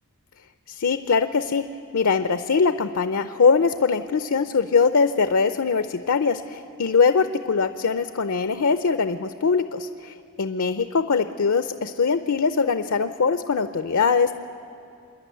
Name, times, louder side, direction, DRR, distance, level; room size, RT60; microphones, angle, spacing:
voice 1, 0.7-1.6 1.9-14.3, left 5 dB, 70° left, 10 dB, 0.6 m, -22 dB
27.0 x 11.0 x 9.2 m, 2.6 s
head